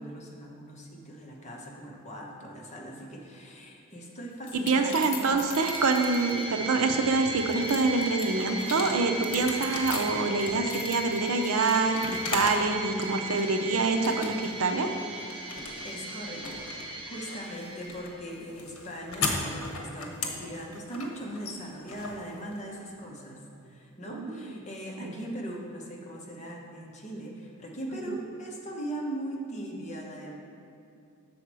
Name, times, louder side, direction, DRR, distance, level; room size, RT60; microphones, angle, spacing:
voice 1, 0.0-5.4 15.8-16.7 17.1-30.4, right 1 dB, 35° left, -2 dB, 1.1 m, -40 dB
sound 1, 4.4-6.4 7.0-12.7 13.0-13.6 14.0-14.6 14.9-22.8, left 3 dB, 75° left, 1.0 m, -37 dB
voice 2, 4.7-14.9 24.1-24.5 25.0-25.1 28.1-28.2, right 3 dB, 80° right, 5 dB, 0.6 m, -26 dB
sound 2, 5.5-18.4, right 2 dB, 25° right, 0.8 m, -37 dB
6.7 x 4.3 x 6.1 m, 2.7 s
head